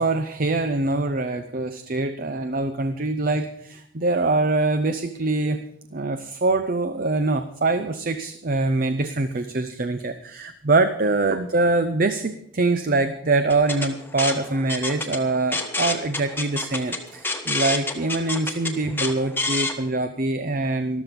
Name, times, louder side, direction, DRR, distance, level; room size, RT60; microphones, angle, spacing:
voice 1, 0.0-5.6 5.9-21.0, right 2 dB, 45° right, 9 dB, 0.7 m, -24 dB
sound 1, 13.5-19.7, left 3 dB, 10° left, 1.3 m, -28 dB
13.0 x 13.0 x 5.3 m, 0.72 s
head